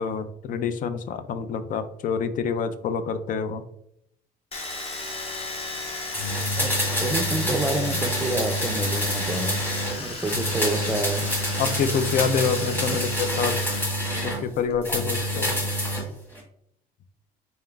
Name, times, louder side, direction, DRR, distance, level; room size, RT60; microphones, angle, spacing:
voice 1, 0.0-3.6 11.6-13.7 14.2-15.5, left 6 dB, 55° left, 11 dB, 0.4 m, -27 dB
Domestic sounds home sounds, 4.5-13.8 14.1-14.9, left 2 dB, 35° left, 0.9 m, -35 dB
sound 1, 6.1-10.0 10.3-14.4 14.8-16.1 16.4-16.5, equal, 10° left, 1.5 m, -27 dB
voice 2, 6.6-9.6 10.0-11.2 12.9-13.0, right 2 dB, 10° right, 7 dB, 0.4 m, -28 dB
4.0 x 3.6 x 2.3 m, 0.74 s
cardioid pair, 110°, 17 cm